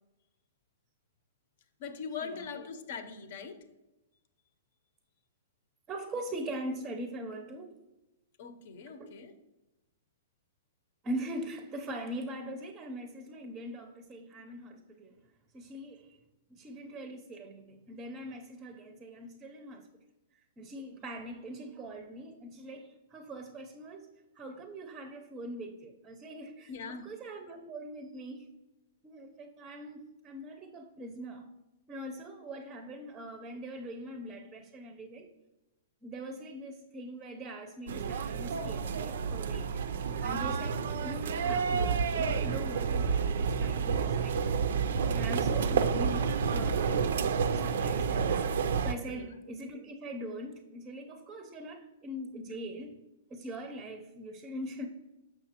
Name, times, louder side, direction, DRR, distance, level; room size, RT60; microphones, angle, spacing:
voice 1, 1.8-3.6 8.4-9.3 26.7-27.0 49.1-49.3, left 5 dB, 60° left, 10 dB, 0.7 m, -41 dB
voice 2, 5.9-7.8 8.9-9.1 11.0-15.2 15.5-16.2 16.5-19.9 20.3-28.5 29.0-31.5 31.9-35.3 36.0-44.6 45.1-47.1 47.6-48.5 48.8-53.0 53.3-54.9, right 1 dB, 20° right, 5 dB, 0.5 m, -42 dB
sound 1, 37.9-48.9, right 6 dB, 70° right, 0.4 m, -30 dB
6.5 x 5.8 x 2.8 m, 1.0 s
hypercardioid pair, 135°, 0 cm